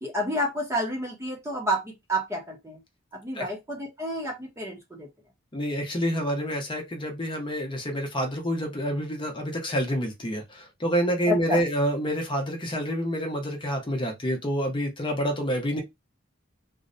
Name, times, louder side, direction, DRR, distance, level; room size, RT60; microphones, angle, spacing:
voice 1, 0.0-2.8 3.1-5.1 11.3-11.6, equal, 15° right, 0.4 m, -29 dB
voice 2, 5.5-15.8, equal, 25° left, 0.6 m, -28 dB
2.6 x 2.0 x 2.5 m
head